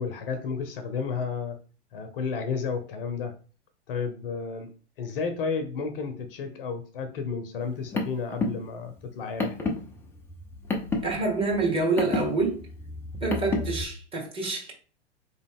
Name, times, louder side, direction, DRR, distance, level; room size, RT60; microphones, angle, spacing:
voice 1, 0.0-1.6 1.9-3.3 3.9-4.7 5.0-9.7, left 5 dB, 50° left, 0.8 m, -32 dB
Car, 7.6-13.8, left 3 dB, 5° left, 0.5 m, -31 dB
voice 2, 11.0-12.6 13.2-14.7, right 3 dB, 15° right, 1.4 m, -27 dB
4.0 x 3.0 x 3.5 m
figure-of-eight pair, 100°, 35 cm